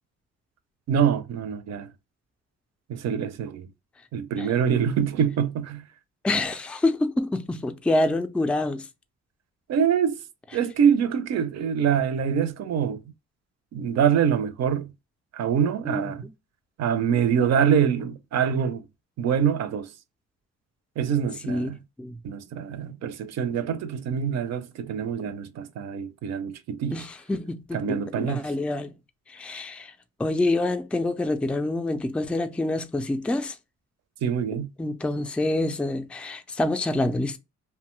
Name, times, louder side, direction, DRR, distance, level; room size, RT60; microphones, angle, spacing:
voice 1, 0.9-1.9 2.9-3.7 4.1-5.8 9.7-10.2 10.5-13.0 13.7-14.9 15.3-16.3 16.8-18.9 19.2-19.9 21.0-21.8 22.2-27.0 27.7-28.5 34.2-34.7, right 8 dB, 60° right, 0.5 m, -25 dB
voice 2, 6.2-8.9 15.8-16.3 21.5-21.7 22.0-22.2 26.9-28.9 29.3-29.9 30.2-33.6 34.8-37.4, left 2 dB, 5° left, 0.3 m, -27 dB
2.8 x 2.2 x 3.0 m
cardioid pair, 90°, 30 cm